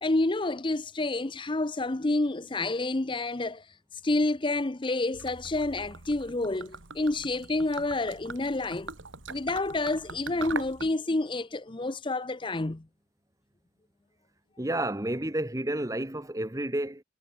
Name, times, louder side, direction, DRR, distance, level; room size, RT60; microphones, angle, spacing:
voice 1, 0.0-3.7 4.0-8.9 9.3-12.8, left 2 dB, 25° left, 0.7 m, -29 dB
Gurgling / Liquid, 5.1-10.9, right 4 dB, 85° right, 2.8 m, -42 dB
voice 2, 14.6-17.0, right 1 dB, 15° right, 1.3 m, -30 dB
head